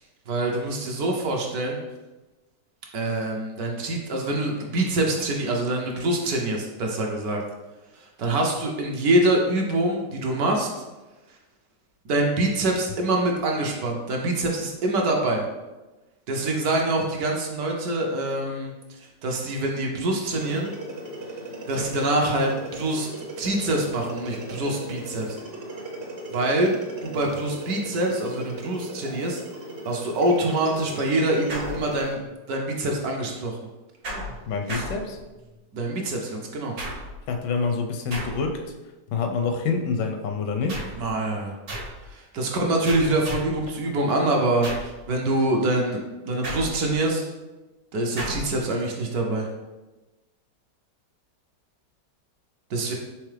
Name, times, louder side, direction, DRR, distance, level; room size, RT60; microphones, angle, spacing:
voice 1, 0.3-1.8 2.9-7.4 8.0-10.8 12.0-15.4 16.3-18.7 19.0-20.7 21.7-25.4 26.3-26.7 27.0-29.4 29.9-32.2 32.5-33.6 34.7-34.9 35.7-36.7 41.0-41.6 42.1-47.2 47.9-49.5 52.7-52.9, right 1 dB, 70° right, 0 dB, 1.1 m, -25 dB
sound 1, 20.3-32.2, right 1 dB, 50° right, 0.8 m, -37 dB
sound 2, 31.5-32.3 34.0-35.6 36.8-37.3 38.1-38.7 40.7-41.1 41.7-42.1 42.9-43.7 44.6-45.0 46.4-47.1 48.2-48.6, equal, 90° right, 1.8 m, -35 dB
voice 2, 34.5-35.2 37.3-38.6 39.1-40.8, left 4 dB, 80° left, 4 dB, 1.2 m, -26 dB
4.6 x 3.4 x 3.3 m, 1.1 s
omnidirectional pair, 1.9 m